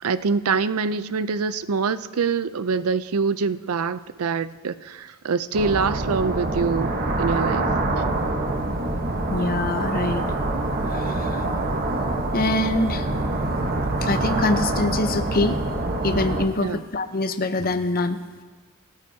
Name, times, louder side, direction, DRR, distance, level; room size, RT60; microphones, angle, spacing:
voice 1, 0.0-7.7 16.6-16.8, right 5 dB, 75° right, 14 dB, 0.5 m, -25 dB
sound 1, 5.5-16.5, right 2 dB, 45° right, 1.2 m, -25 dB
voice 2, 9.3-10.3 10.9-11.4 12.3-13.2 14.0-15.6 16.0-18.2, left 2 dB, 45° left, 9 dB, 0.8 m, -24 dB
26.5 x 14.0 x 2.8 m, 1.4 s
head